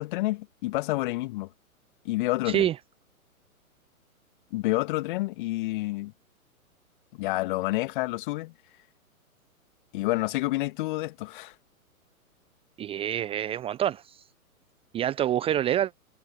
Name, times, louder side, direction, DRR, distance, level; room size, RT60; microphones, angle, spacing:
voice 1, 0.0-1.5 2.0-2.7 4.5-6.1 7.2-8.5 9.9-11.5, left 19 dB, 35° left, 2.5 m, -29 dB
voice 2, 2.4-2.8 12.8-14.2 14.9-15.9, right 11 dB, 15° right, 1.1 m, -26 dB
figure-of-eight pair, 115°, 43 cm